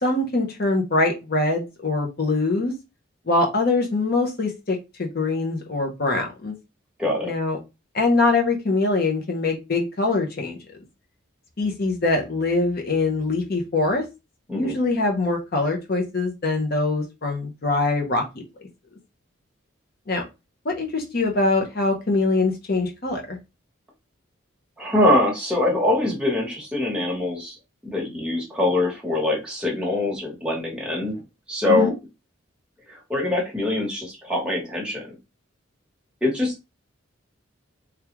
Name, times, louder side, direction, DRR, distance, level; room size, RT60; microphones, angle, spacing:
voice 1, 0.0-2.7 3.3-6.5 7.2-7.6 7.9-10.6 11.6-14.0 14.5-18.2 20.1-20.2 20.6-23.4 31.7-31.9, left 3 dB, 45° left, 2 dB, 0.6 m, -23 dB
voice 2, 7.0-7.3 14.5-14.7 24.8-27.6 27.8-31.2 31.5-31.9 32.9-35.0 36.2-36.5, left 1 dB, 5° right, -3 dB, 1.1 m, -23 dB
3.4 x 2.3 x 2.9 m, 0.25 s
head